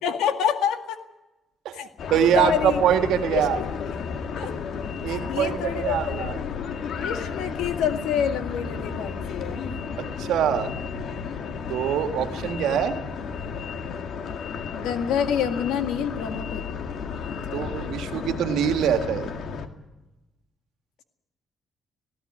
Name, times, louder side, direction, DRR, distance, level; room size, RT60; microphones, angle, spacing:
voice 1, 0.0-1.0 1.7-1.9 2.3-2.8 3.3-3.7 4.4-4.5 5.1-6.3 7.0-9.7 14.7-16.7 17.5-17.7, left 8 dB, 90° left, 7 dB, 2.0 m, -27 dB
voice 2, 1.7-3.6 5.0-6.4 10.0-10.7 11.7-13.0 17.5-19.3, right 9 dB, 85° right, 7 dB, 1.8 m, -24 dB
sound 1, 2.0-19.7, left 6 dB, 70° left, 1.9 m, -33 dB
19.0 x 16.0 x 9.9 m, 1.0 s
cardioid pair, 90°, 0 cm